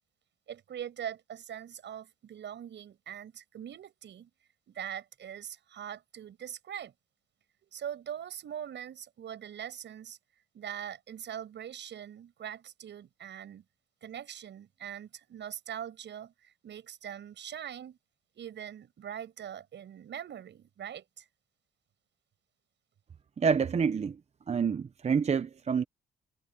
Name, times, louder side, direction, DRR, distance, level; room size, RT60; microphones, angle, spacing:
voice 1, 0.5-4.3 4.7-6.9 7.7-10.2 10.5-13.6 14.0-18.0 18.3-21.3, right 9 dB, 65° right, 7.6 m, -42 dB
voice 2, 23.4-24.1 24.5-25.8, right 6 dB, 35° right, 0.7 m, -27 dB
cardioid pair, 90°, 20 cm